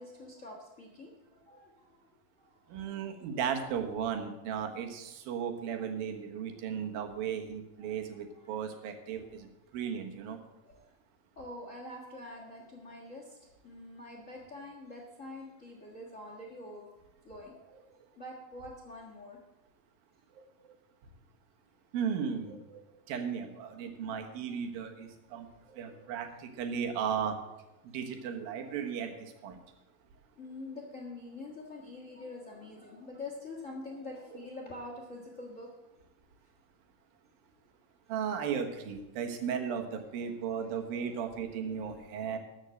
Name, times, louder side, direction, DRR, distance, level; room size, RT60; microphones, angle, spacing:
voice 1, 0.0-2.1 2.4-2.6 2.9-3.0 5.7-5.9 7.8-8.0 8.3-8.5 9.2-9.3 10.6-10.9 11.3-16.8 17.2-17.7 18.2-19.4 30.4-35.7 39.3-39.5 40.6-40.7 41.0-41.2 41.5-41.8, left 2 dB, 40° left, 0 dB, 1.1 m, -46 dB
voice 2, 2.7-9.5 9.7-10.4 20.4-20.5 21.9-27.4 27.9-29.6 38.1-42.4, right 7 dB, 85° right, 5 dB, 3.1 m, -36 dB
13.0 x 6.5 x 7.7 m, 1.0 s
omnidirectional pair, 4.0 m